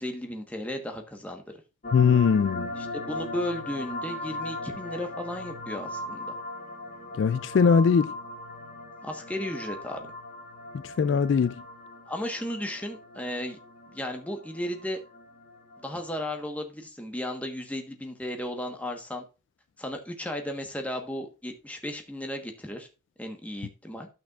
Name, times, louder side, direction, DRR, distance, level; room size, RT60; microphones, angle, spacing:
voice 1, 0.0-1.4 2.8-6.3 9.0-10.0 12.1-13.6 13.9-15.0 15.8-19.2 19.8-22.9 23.2-24.1, left 1 dB, 10° left, 1.2 m, -35 dB
sound 1, 1.8-16.4, left 2 dB, 50° left, 1.1 m, -39 dB
voice 2, 1.9-2.7 7.2-8.1 10.7-11.5, left 6 dB, 75° left, 0.3 m, -21 dB
12.0 x 6.0 x 2.4 m
head